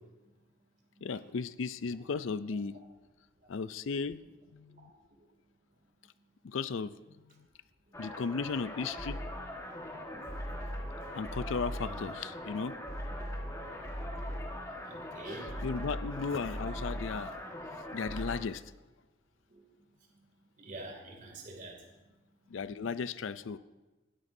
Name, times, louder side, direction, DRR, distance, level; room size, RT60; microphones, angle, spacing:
voice 1, 1.0-2.8 3.5-4.2 4.5-4.9 6.4-6.9 8.0-9.2 11.1-12.8 15.3-17.4 17.9-18.6 22.5-23.6, left 5 dB, 70° left, 15 dB, 0.4 m, -35 dB
sound 1, 7.9-18.4, equal, 15° left, 1.5 m, -40 dB
voice 2, 14.9-15.5 20.6-21.8, right 2 dB, 40° right, 0 dB, 2.6 m, -45 dB
20.0 x 13.5 x 2.7 m, 1.1 s
head